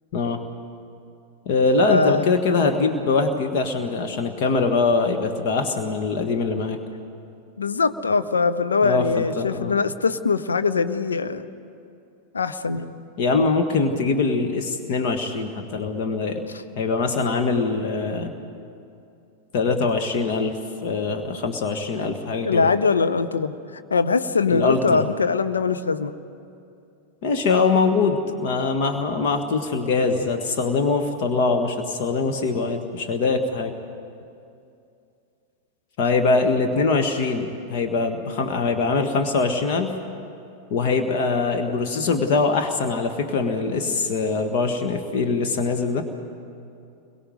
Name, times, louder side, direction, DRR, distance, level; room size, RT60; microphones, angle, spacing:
voice 1, 0.1-0.4 1.5-6.8 8.8-9.8 13.2-16.4 16.8-18.3 19.5-22.7 24.5-25.1 27.2-33.7 36.0-40.0 40.7-46.0, left 4 dB, 50° left, 5 dB, 1.7 m, -23 dB
voice 2, 1.8-2.3 7.6-11.5 12.3-12.9 22.4-23.5 23.9-26.1, left 4 dB, 75° left, 9 dB, 0.9 m, -22 dB
30.0 x 23.0 x 5.1 m, 2.5 s
figure-of-eight pair, 90°, 0 cm